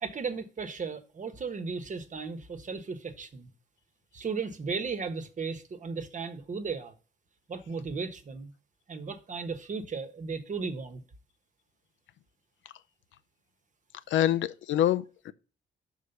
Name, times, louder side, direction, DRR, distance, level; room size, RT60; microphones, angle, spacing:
voice 1, 0.0-3.5 4.1-6.9 7.5-8.5 8.9-11.0 14.2-14.4, right 5 dB, 40° right, 1.1 m, -35 dB
voice 2, 14.1-15.3, left 11 dB, 75° left, 0.6 m, -26 dB
5.6 x 4.8 x 6.5 m
cardioid pair, 90°, 20 cm